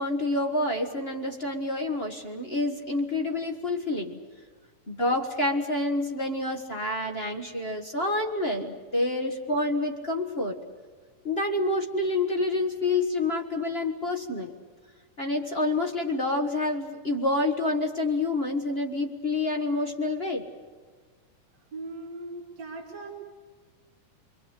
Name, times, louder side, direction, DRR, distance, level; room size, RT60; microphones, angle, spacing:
voice 1, 0.0-4.2 4.9-10.6 11.2-14.5 15.2-20.4, left 2 dB, 40° left, 2 dB, 0.9 m, -28 dB
voice 2, 21.7-23.1, right 2 dB, 35° right, 0 dB, 3.3 m, -39 dB
28.5 x 22.5 x 8.2 m, 1.5 s
omnidirectional pair, 3.8 m